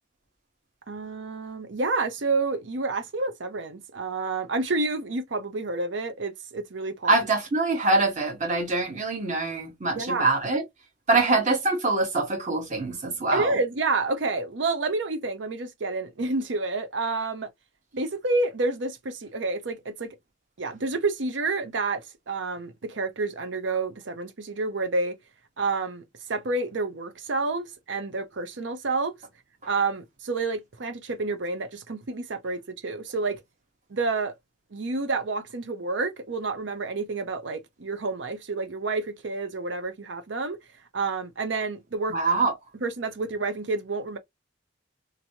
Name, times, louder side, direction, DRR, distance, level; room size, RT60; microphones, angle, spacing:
voice 1, 0.9-7.1 9.9-10.3 13.3-17.5 17.9-20.2 20.6-25.2 25.6-26.0 26.3-29.1 29.7-33.4 33.9-34.3 34.7-40.6 40.9-42.2 42.8-44.2, right 3 dB, 70° right, 0.7 m, -29 dB
voice 2, 7.1-10.6 11.1-13.6 42.1-42.5, right 3 dB, 40° right, 1.1 m, -24 dB
2.9 x 2.6 x 2.8 m
head